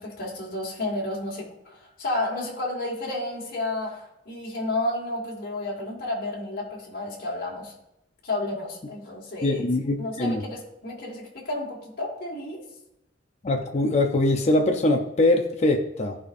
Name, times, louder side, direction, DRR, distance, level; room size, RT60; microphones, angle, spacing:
voice 1, 0.0-7.7 8.2-9.6 10.0-12.6, left 2 dB, 55° left, -5 dB, 1.7 m, -31 dB
voice 2, 9.4-10.4 13.4-16.2, left 2 dB, 35° left, 3 dB, 0.6 m, -22 dB
14.5 x 4.9 x 2.6 m, 0.87 s
head